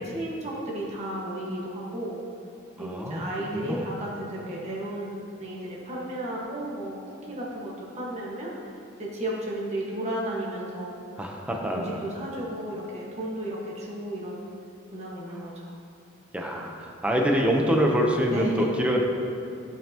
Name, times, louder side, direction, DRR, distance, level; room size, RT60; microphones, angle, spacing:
voice 1, 0.0-2.2 2.7-11.0 11.5-14.4 14.9-15.7 18.3-18.8, right 1 dB, 35° right, -5 dB, 1.6 m, -34 dB
voice 2, 2.8-3.2 3.5-3.9 11.2-12.0 16.3-19.0, equal, 5° right, 0 dB, 0.8 m, -25 dB
14.5 x 5.5 x 3.0 m, 2.7 s
head